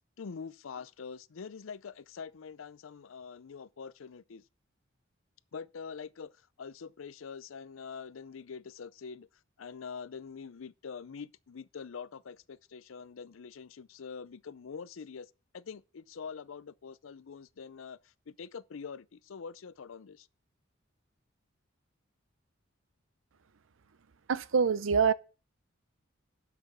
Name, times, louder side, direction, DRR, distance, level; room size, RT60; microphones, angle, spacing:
voice 1, 0.2-4.4 5.5-6.3 6.6-9.3 9.6-20.3, left 6 dB, 85° left, 0.5 m, -45 dB
voice 2, 24.3-25.1, right 6 dB, 80° right, 0.6 m, -25 dB
8.1 x 6.1 x 6.8 m
head